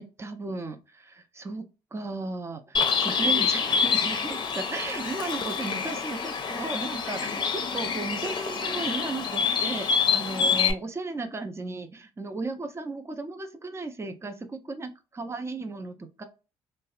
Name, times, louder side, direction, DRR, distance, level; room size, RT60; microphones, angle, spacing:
voice 1, 0.0-1.6 1.9-16.2, right 3 dB, 25° right, 8 dB, 0.5 m, -35 dB
Bird, 2.7-10.7, left 5 dB, 45° left, 0.6 m, -27 dB
2.6 x 2.1 x 2.3 m, 0.30 s
supercardioid pair, 70°, 11 cm